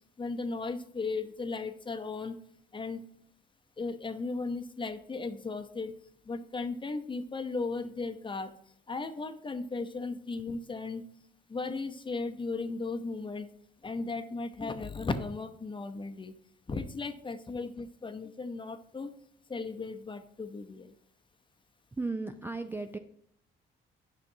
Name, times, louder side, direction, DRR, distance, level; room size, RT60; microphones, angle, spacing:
voice 1, 0.2-2.4 2.7-3.0 3.8-5.9 6.3-8.5 8.9-11.0 11.5-13.5 13.8-16.3 16.7-19.1 19.5-20.9, left 3 dB, 25° left, 8 dB, 0.7 m, -36 dB
voice 2, 21.9-23.0, right 3 dB, 10° right, 7 dB, 0.4 m, -35 dB
8.7 x 5.9 x 2.7 m, 0.68 s
cardioid pair, 90°, 20 cm